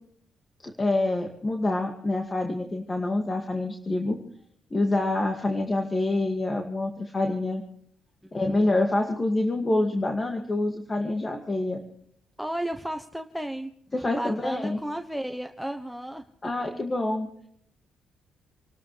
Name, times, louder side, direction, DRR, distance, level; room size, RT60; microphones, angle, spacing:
voice 1, 0.6-4.2 4.7-7.6 8.3-11.8 13.9-14.8 16.4-17.3, left 2 dB, 25° left, 3 dB, 2.2 m, -26 dB
voice 2, 8.2-8.8 12.4-13.7 14.0-16.2, right 1 dB, ahead, 5 dB, 1.0 m, -34 dB
28.0 x 13.0 x 3.3 m, 0.66 s
cardioid pair, 90°, 0 cm